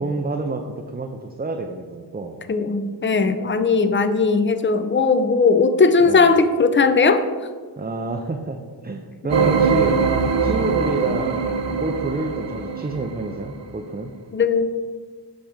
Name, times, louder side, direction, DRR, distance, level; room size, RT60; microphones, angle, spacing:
voice 1, 0.0-2.4 6.1-6.3 7.8-10.0 10.4-14.1, right 3 dB, 20° right, 3 dB, 0.5 m, -28 dB
voice 2, 2.5-7.2 14.3-14.8, left 4 dB, 25° left, 9 dB, 0.5 m, -18 dB
sound 1, 9.3-13.6, right 5 dB, 80° right, 0.7 m, -22 dB
8.8 x 3.4 x 5.1 m, 1.5 s
wide cardioid pair, 55°, 43 cm